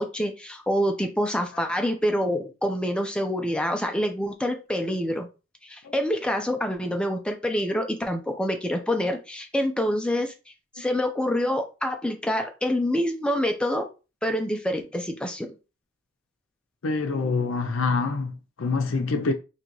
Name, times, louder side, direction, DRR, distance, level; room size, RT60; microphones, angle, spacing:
voice 1, 0.0-5.3 5.6-10.3 10.8-13.8 14.2-15.5, equal, 5° left, 0.6 m, -26 dB
voice 2, 16.8-19.3, left 4 dB, 75° left, 0.6 m, -26 dB
3.8 x 2.9 x 3.1 m
head